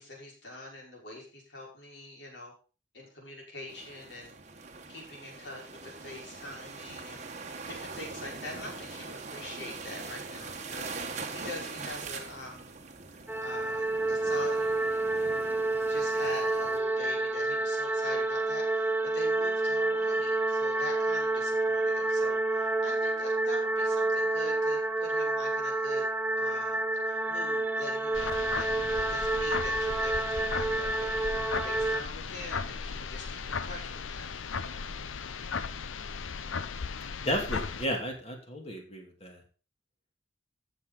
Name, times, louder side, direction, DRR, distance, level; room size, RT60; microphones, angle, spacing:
voice 1, 0.0-2.5 2.9-4.4 4.9-12.7 13.1-26.1 26.4-34.3 34.6-34.8, left 2 dB, 60° left, -2 dB, 5.3 m, -44 dB
sound 1, 3.7-16.8, right 4 dB, 35° right, 1.3 m, -42 dB
sound 2, 13.3-32.0, right 2 dB, 10° right, 0.6 m, -29 dB
sound 3, 28.1-37.9, left 5 dB, 85° left, 0.7 m, -36 dB
voice 2, 37.2-39.4, equal, 30° left, 2 dB, 2.8 m, -33 dB
14.0 x 7.3 x 4.0 m, 0.35 s
head